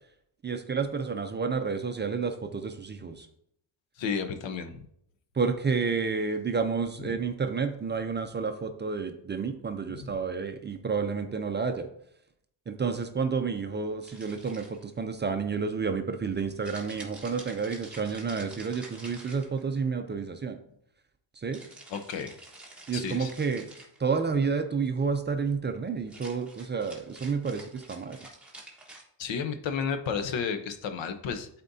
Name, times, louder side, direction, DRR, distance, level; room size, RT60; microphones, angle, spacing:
voice 1, 0.4-3.3 5.4-11.9 12.7-20.6 21.4-21.6 22.9-23.7 24.0-28.2, right 5 dB, 25° right, 7 dB, 0.4 m, -30 dB
voice 2, 4.0-4.8 9.9-10.1 21.9-22.3 22.9-23.3 29.2-31.5, left 6 dB, 75° left, 8 dB, 0.9 m, -32 dB
sound 1, 14.0-15.0 16.6-19.8 21.5-24.0 26.0-29.0, right 2 dB, ahead, 1.3 m, -48 dB
11.5 x 4.2 x 2.7 m, 0.72 s
cardioid pair, 150°, 45 cm